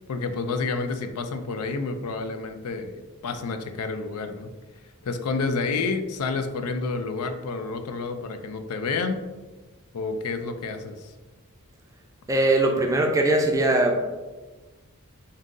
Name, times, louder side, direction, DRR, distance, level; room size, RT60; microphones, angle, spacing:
voice 1, 0.1-4.5 5.0-9.2 9.9-11.1, left 4 dB, 90° left, 7 dB, 0.4 m, -29 dB
voice 2, 12.3-14.0, right 2 dB, 15° right, 2 dB, 0.4 m, -21 dB
3.7 x 2.7 x 3.7 m, 1.2 s
head